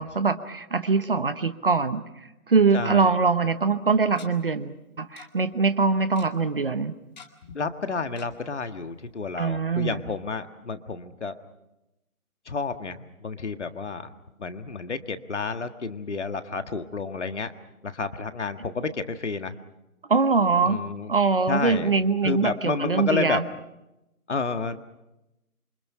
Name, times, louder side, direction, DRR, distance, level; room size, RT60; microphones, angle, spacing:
voice 1, 0.0-6.9 9.4-10.0 20.1-20.8 21.1-23.5, right 4 dB, 35° right, 13 dB, 1.0 m, -23 dB
voice 2, 2.7-3.2 7.5-11.4 12.4-14.1 14.4-17.5 17.8-19.6 20.6-21.1 21.5-21.9 22.2-23.4 24.3-24.8, left 4 dB, 50° left, 9 dB, 1.7 m, -30 dB
Tick-tock, 3.3-3.4 4.2-4.3 5.2-5.3 5.5-5.6 5.9-6.3 7.2-7.6 8.2-8.3 8.7-8.8 9.1-9.2, left 6 dB, 30° left, 2.0 m, -46 dB
28.0 x 25.0 x 5.7 m, 0.93 s
figure-of-eight pair, 160°, 45 cm